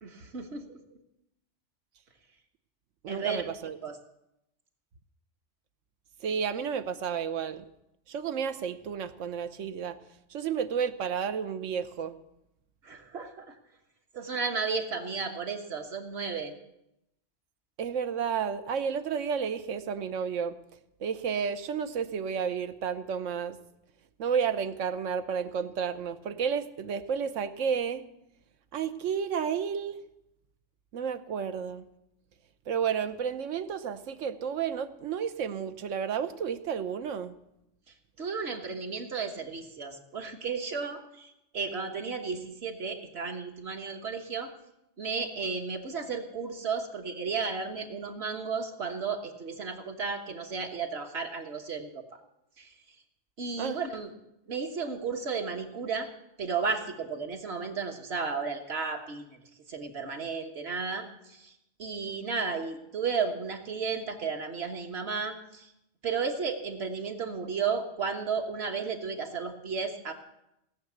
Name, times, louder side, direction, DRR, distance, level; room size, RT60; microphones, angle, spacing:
voice 1, 0.0-0.8 3.1-3.4 3.8-4.0 12.8-13.5 14.1-16.5 38.2-44.5 45.0-52.0 52.6-52.7 53.4-54.1 54.5-56.1 56.4-59.3 59.7-61.5 61.8-65.7 66.0-70.1, right 5 dB, 60° right, 3 dB, 1.6 m, -33 dB
voice 2, 3.0-3.8 6.2-7.6 8.1-10.0 10.3-12.2 17.8-20.6 21.0-23.6 24.2-28.0 28.7-30.0 30.9-31.9 32.7-37.3 53.6-53.8, right 7 dB, 85° right, 12 dB, 1.1 m, -31 dB
17.0 x 6.8 x 8.1 m, 0.84 s
omnidirectional pair, 1.2 m